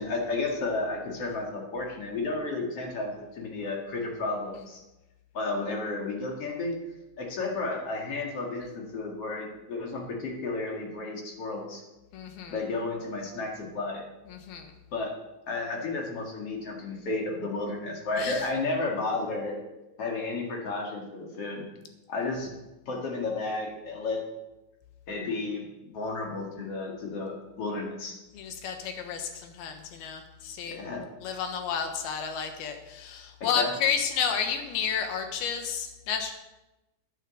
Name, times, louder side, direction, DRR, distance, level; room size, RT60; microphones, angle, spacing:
voice 1, 0.0-4.8 5.3-6.8 7.2-11.8 12.5-14.0 14.9-15.1 15.5-19.7 20.0-21.7 22.1-22.5 22.9-24.2 25.1-28.2 30.7-31.0 33.6-33.7, left 3 dB, 45° left, 0 dB, 2.6 m, -32 dB
voice 2, 12.1-12.6 14.3-14.7 18.2-18.5 28.3-30.8 31.2-36.3, left 7 dB, 85° left, 6 dB, 3.2 m, -31 dB
10.0 x 9.3 x 7.6 m, 1.0 s
omnidirectional pair, 4.4 m